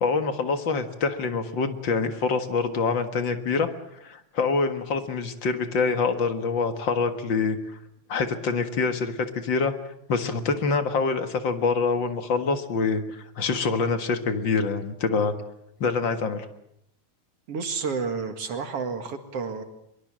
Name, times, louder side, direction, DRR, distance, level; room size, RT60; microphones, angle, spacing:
voice 1, 0.0-3.7 4.0-7.6 8.1-9.7 10.1-15.3 15.8-16.5, left 4 dB, 45° left, 8 dB, 2.0 m, -25 dB
voice 2, 17.5-19.6, right 5 dB, 55° right, 7 dB, 2.8 m, -30 dB
23.5 x 23.0 x 7.5 m, 0.76 s
omnidirectional pair, 3.3 m